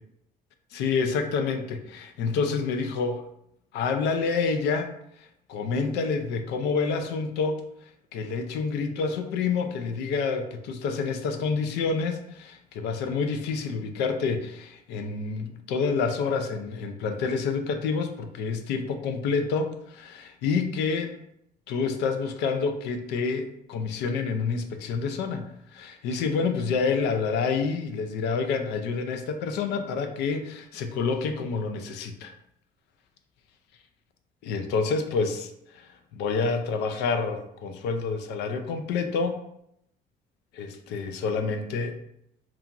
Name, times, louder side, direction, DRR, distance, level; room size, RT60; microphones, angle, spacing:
voice 1, 0.7-3.2 3.7-4.9 5.5-7.6 8.1-21.2 21.7-32.3 34.4-35.5 35.7-39.4 40.5-42.0, left 5 dB, 80° left, 6 dB, 0.4 m, -28 dB
2.9 x 2.4 x 2.4 m, 0.76 s
cardioid pair, 110°, 17 cm